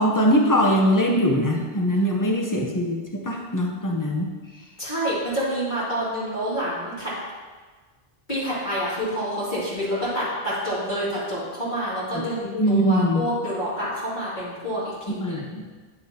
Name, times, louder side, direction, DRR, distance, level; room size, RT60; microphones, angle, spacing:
voice 1, 0.0-4.3 12.1-13.3 15.1-15.6, equal, 20° left, 0 dB, 0.8 m, -22 dB
voice 2, 4.8-7.1 8.3-15.4, equal, 45° left, -11 dB, 2.6 m, -28 dB
9.2 x 6.6 x 2.9 m, 1.4 s
omnidirectional pair, 1.1 m